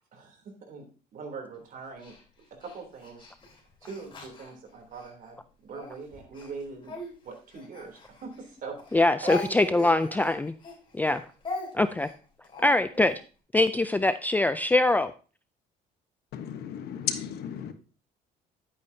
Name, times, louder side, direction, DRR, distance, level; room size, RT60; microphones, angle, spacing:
voice 1, 0.1-0.8 1.1-2.1 2.5-3.3 3.8-7.0 7.2-9.9 11.0-11.2, right 4 dB, 55° right, 3 dB, 3.3 m, -42 dB
Speech, 2.0-5.1 5.7-8.5 8.8-13.2, left 3 dB, 30° left, 3.8 m, -41 dB
voice 2, 8.9-10.5 10.9-11.2 11.7-12.1 12.6-13.2 13.5-15.1, left 2 dB, 10° left, 11 dB, 0.4 m, -23 dB
voice 3, 16.3-17.7, left 9 dB, 75° left, 8 dB, 1.2 m, -34 dB
11.0 x 8.6 x 2.8 m, 0.36 s
cardioid pair, 110°, 17 cm